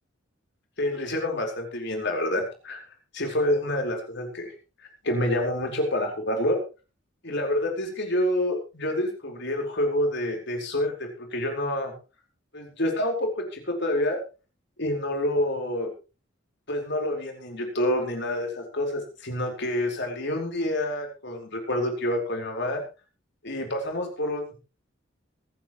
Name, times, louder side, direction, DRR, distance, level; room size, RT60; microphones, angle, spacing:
voice 1, 0.8-2.8 3.1-4.5 5.0-6.6 7.2-11.9 12.5-14.2 14.8-15.9 16.7-22.8 23.4-24.6, left 1 dB, 60° left, 2 dB, 4.7 m, -27 dB
24.5 x 9.7 x 3.2 m, 0.32 s
head